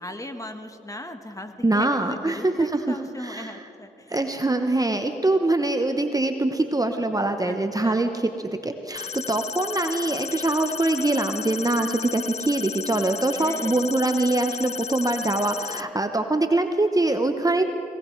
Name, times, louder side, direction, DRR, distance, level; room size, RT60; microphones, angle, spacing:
voice 1, 0.0-4.2 7.5-7.6 7.8-8.0 13.4-13.8, left 1 dB, 15° left, 7 dB, 1.3 m, -38 dB
voice 2, 1.6-3.6 4.1-8.3 8.6-17.6, right 2 dB, 20° right, 6 dB, 0.9 m, -23 dB
sound 1, 8.9-15.8, left 7 dB, 35° left, 0.4 m, -34 dB
18.0 x 18.0 x 3.2 m, 2.6 s
supercardioid pair, 45°, 20 cm